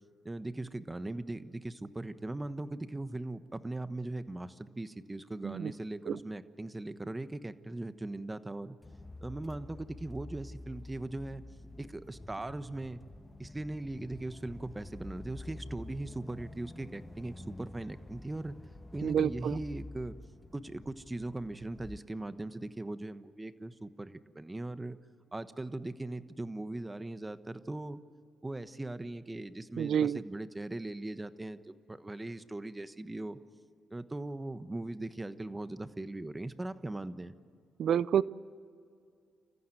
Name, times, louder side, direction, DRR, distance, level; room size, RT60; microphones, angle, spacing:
voice 1, 0.2-8.8 9.2-11.4 11.8-13.0 13.4-18.6 18.9-20.2 20.5-25.0 25.3-28.0 28.4-33.4 33.9-37.3, right 2 dB, 20° right, 12 dB, 1.2 m, -39 dB
sound 1, 8.8-22.0, left 2 dB, 15° left, 1.2 m, -48 dB
voice 2, 19.0-19.6 29.8-30.2 37.8-38.2, right 9 dB, 70° right, 20 dB, 0.5 m, -28 dB
27.5 x 15.0 x 9.1 m, 2.4 s
supercardioid pair, 55°, 0 cm